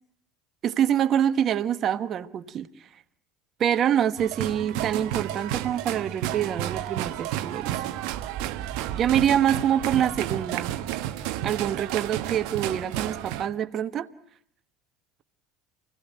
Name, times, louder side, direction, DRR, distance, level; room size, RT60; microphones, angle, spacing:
voice 1, 0.6-2.7 3.6-7.8 9.0-10.8 11.4-14.1, right 9 dB, 40° right, 1.4 m, -25 dB
sound 1, 4.2-13.5, right 13 dB, 60° right, 1.2 m, -31 dB
29.0 x 17.5 x 9.3 m
figure-of-eight pair, 70°, 0 cm